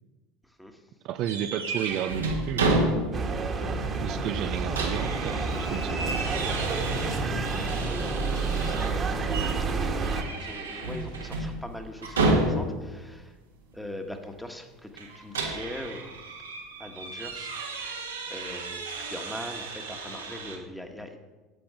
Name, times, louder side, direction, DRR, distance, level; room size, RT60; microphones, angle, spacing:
voice 1, 1.0-2.8 4.0-6.2 7.2-7.4, right 10 dB, 55° right, 10 dB, 0.5 m, -32 dB
sound 1, 1.2-3.4 3.7-3.8 4.3-9.0 9.3-9.6 10.0-12.9 15.0-20.6, right 2 dB, 85° right, 1.6 m, -31 dB
sound 2, 3.1-10.2, right 3 dB, 35° right, 1.5 m, -29 dB
voice 2, 7.8-13.3 13.7-16.2 16.8-17.6 17.9-21.2, left 1 dB, 5° left, 5 dB, 1.5 m, -42 dB
10.5 x 8.5 x 5.0 m, 1.2 s
hypercardioid pair, 75°, 0 cm